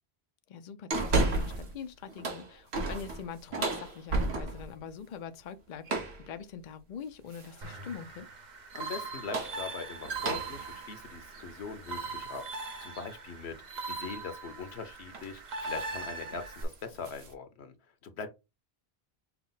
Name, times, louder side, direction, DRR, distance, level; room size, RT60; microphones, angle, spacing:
voice 1, 0.5-8.3, left 7 dB, 55° left, 0.6 m, -43 dB
sound 1, 0.9-1.7 2.1-4.8 5.9-6.3 7.3-7.8 9.0-12.5 12.9-13.0 14.6-14.8 15.1-15.4 15.7-16.0 16.3-17.3, right 2 dB, 80° right, 1.3 m, -34 dB
sound 2, 7.6-16.6, right 4 dB, 45° right, 0.9 m, -41 dB
voice 2, 8.7-12.4 12.8-17.7 18.0-18.3, left 5 dB, 85° left, 1.1 m, -41 dB
5.7 x 2.1 x 3.9 m
omnidirectional pair, 1.1 m